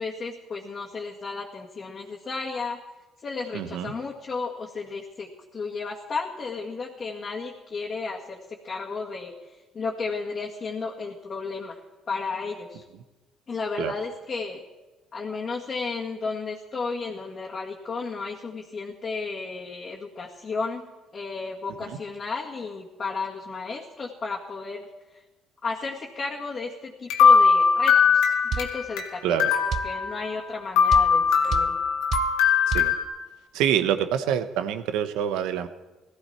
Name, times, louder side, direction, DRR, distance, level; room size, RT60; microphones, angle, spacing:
voice 1, 0.0-2.8 3.2-9.3 9.7-11.8 12.1-12.8 13.5-14.6 15.1-20.9 21.1-24.9 25.6-31.8, left 4 dB, 40° left, -4 dB, 2.0 m, -33 dB
voice 2, 3.5-3.9 13.8-13.9 29.2-29.5 32.7-32.9 33.5-35.7, right 9 dB, 85° right, 10 dB, 1.0 m, -26 dB
sound 1, 27.1-29.1 29.4-30.5 30.8-33.0, left 6 dB, 85° left, 1.9 m, -20 dB
sound 2, 28.5-28.7 29.7-29.9 30.9-31.1 31.5-31.7 32.1-32.3 32.7-32.9, right 7 dB, 55° right, 0.5 m, -28 dB
18.0 x 14.5 x 4.4 m, 1.2 s
supercardioid pair, 85°, 0 cm